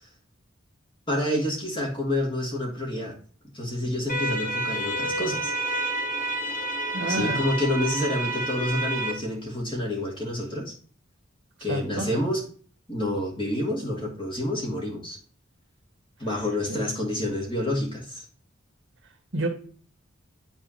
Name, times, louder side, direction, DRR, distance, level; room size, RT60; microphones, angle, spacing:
voice 1, 1.1-3.2 3.5-5.5 7.1-10.7 11.6-12.4 12.9-15.2 16.2-18.2, left 1 dB, 25° left, -1 dB, 2.1 m, -28 dB
sound 1, 4.1-9.1, right 2 dB, 40° left, 1.5 m, -29 dB
voice 2, 6.9-7.4 11.7-12.1 16.7-16.8 19.3-19.5, right 1 dB, 65° right, 4 dB, 1.6 m, -28 dB
10.0 x 4.2 x 2.9 m, 0.43 s
head